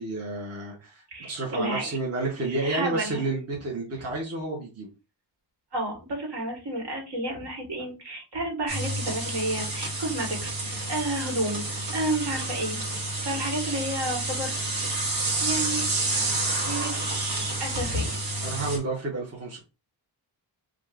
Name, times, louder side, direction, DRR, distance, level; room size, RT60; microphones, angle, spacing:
voice 1, 0.0-4.9 18.4-19.6, right 2 dB, 30° right, -2 dB, 1.1 m, -31 dB
voice 2, 1.1-2.0 2.4-3.2 5.7-12.8 13.2-14.5 15.4-15.9 16.6-18.2, right 1 dB, 65° right, 0 dB, 1.7 m, -31 dB
sound 1, 8.7-18.8, right 2 dB, 50° right, 1.4 m, -29 dB
5.0 x 2.5 x 2.5 m, 0.29 s
wide cardioid pair, 125°, 45 cm